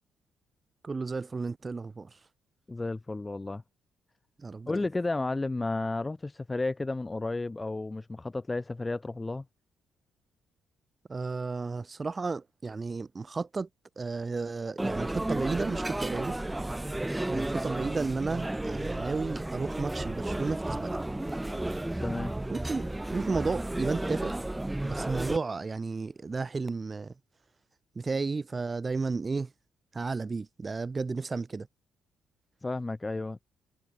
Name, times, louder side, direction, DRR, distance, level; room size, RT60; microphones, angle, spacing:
voice 1, 0.8-2.2 4.4-4.7 11.1-13.7 14.0-16.4 17.3-21.0 22.5-22.8 23.1-24.4 24.8-27.1 28.0-29.5 29.9-31.7, right 4 dB, 30° right, 0.5 m, -33 dB
voice 2, 2.7-3.6 4.7-9.4 22.0-22.3 32.6-33.4, left 2 dB, 20° left, 1.0 m, -32 dB
sound 1, 14.8-25.4, right 1 dB, 10° right, 2.0 m, -33 dB
cardioid pair, 90°, 0 cm